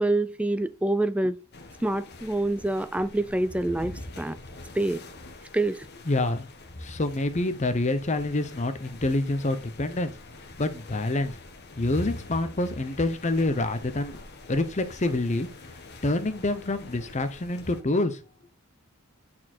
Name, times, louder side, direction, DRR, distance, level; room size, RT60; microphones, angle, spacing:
voice 1, 0.0-1.4 1.8-4.4 4.7-5.0 5.5-5.9, right 2 dB, 5° right, 0.3 m, -26 dB
sound 1, 1.5-17.8, left 2 dB, 45° left, 1.3 m, -44 dB
voice 2, 6.1-6.5 6.8-10.1 10.6-11.4 11.8-14.2 14.5-15.5 16.0-18.2, left 2 dB, 30° left, 0.7 m, -27 dB
8.6 x 4.4 x 4.3 m
head